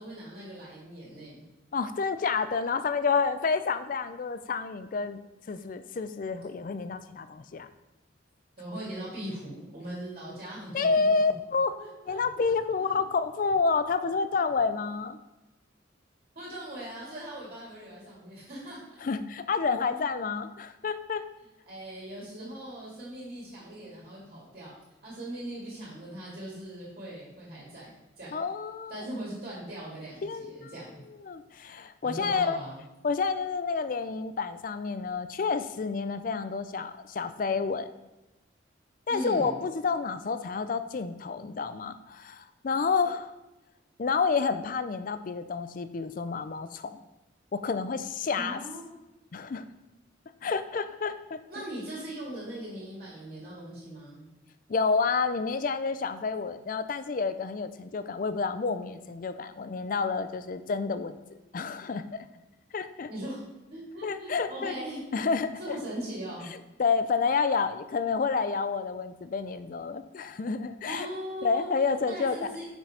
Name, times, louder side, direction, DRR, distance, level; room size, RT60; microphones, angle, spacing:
voice 1, 0.0-1.4 8.6-11.3 11.8-13.0 16.4-18.8 19.9-20.1 21.7-24.7 25.0-27.9 28.2-28.4 28.9-31.0 32.0-32.8 39.1-39.5 48.3-48.9 51.5-54.3 63.1-63.4 63.7-65.0 65.6-66.5 70.8-71.7 72.1-72.6, right 1 dB, 50° right, -6 dB, 2.2 m, -40 dB
voice 2, 1.7-5.2 5.5-7.7 10.7-11.7 12.1-15.2 19.0-21.2 28.3-29.0 30.2-30.7 31.2-32.6 33.0-37.9 39.1-43.3 44.0-47.0 47.5-48.6 49.3-49.6 50.4-51.4 54.7-61.2 61.5-62.0 62.7-63.1 64.0-64.7 65.1-65.8 66.8-71.1 71.4-72.5, left 5 dB, 45° left, 11 dB, 0.4 m, -29 dB
6.0 x 5.3 x 4.2 m, 1.0 s
head